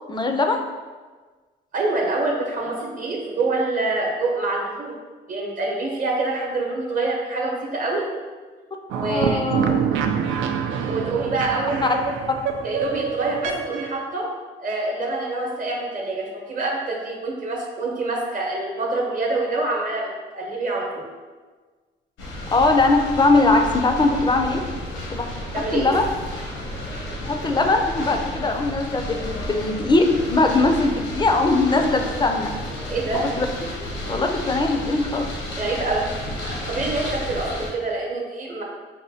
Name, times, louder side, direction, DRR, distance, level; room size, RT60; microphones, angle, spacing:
voice 1, 0.1-0.6 9.1-9.7 11.8-11.9 22.5-24.6 25.1-25.3 25.7-26.1 27.2-32.5 33.1-33.5 34.1-35.3, left 3 dB, 20° left, 4 dB, 0.4 m, -20 dB
voice 2, 1.7-5.0 5.3-8.1 8.9-9.4 10.9-12.1 12.6-14.3 14.6-21.1 25.5-26.0 32.9-33.3 35.6-36.0 36.3-38.6, right 2 dB, 40° right, -1 dB, 0.9 m, -26 dB
sound 1, 8.9-14.0, right 7 dB, 80° right, 0.4 m, -26 dB
sound 2, 22.2-37.7, left 1 dB, 80° left, 0.8 m, -32 dB
4.9 x 2.2 x 2.7 m, 1.4 s
cardioid pair, 90°, 20 cm